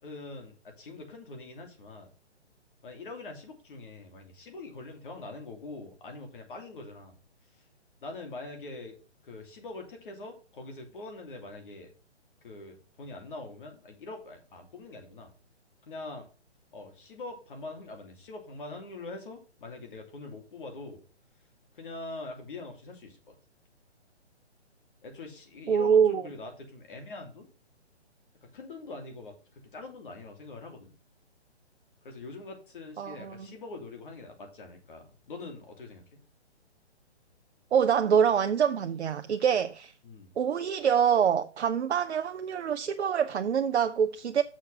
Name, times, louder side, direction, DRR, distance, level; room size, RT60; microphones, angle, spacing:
voice 1, 0.0-2.1 2.8-7.1 8.0-9.0 9.2-11.9 12.4-15.3 15.9-16.3 16.7-21.0 21.7-23.3 25.0-27.5 28.4-30.9 32.0-36.2 40.0-40.3, left 2 dB, 50° left, 2.8 m, -43 dB
voice 2, 25.7-26.2 33.0-33.3 37.7-39.9 40.4-44.4, right 7 dB, 70° right, 0.8 m, -25 dB
6.5 x 6.4 x 5.7 m
hypercardioid pair, 155°, 34 cm